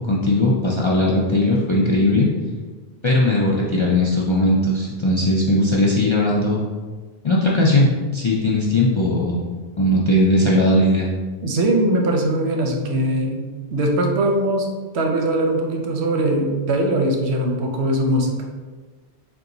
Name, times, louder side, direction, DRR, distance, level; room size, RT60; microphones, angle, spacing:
voice 1, 0.1-2.3 3.0-6.6 7.2-9.5 9.8-11.1, left 1 dB, 45° left, -5 dB, 0.4 m, -18 dB
voice 2, 11.4-14.7 14.9-18.4, right 1 dB, 90° right, 2 dB, 0.9 m, -21 dB
3.9 x 2.4 x 3.8 m, 1.4 s
omnidirectional pair, 1.1 m